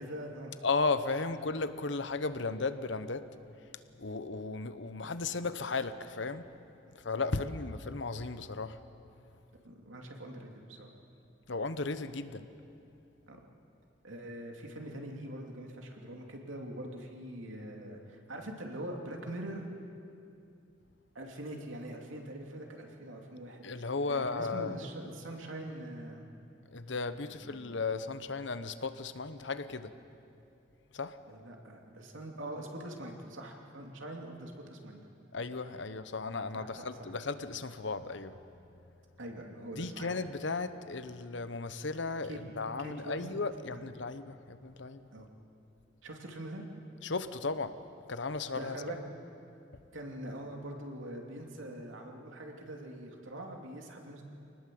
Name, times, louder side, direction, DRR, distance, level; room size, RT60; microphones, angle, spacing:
voice 1, 0.0-0.5 6.9-7.0 9.6-10.9 13.3-13.4 14.0-19.7 21.1-26.3 27.2-27.6 31.3-35.0 36.5-37.2 39.2-40.1 42.3-42.4 42.8-43.4 43.7-43.8 45.1-45.3 46.0-46.7 48.5-49.0 49.9-54.2, right 1 dB, 80° right, 1 dB, 2.9 m, -43 dB
voice 2, 0.6-3.3 4.0-6.5 6.9-8.8 11.5-12.5 23.6-24.8 26.7-29.9 30.9-31.2 35.3-38.3 39.8-45.1 47.0-47.8 48.1-48.8, left 3 dB, 65° left, 12 dB, 0.9 m, -35 dB
26.0 x 19.5 x 7.8 m, 2.7 s
head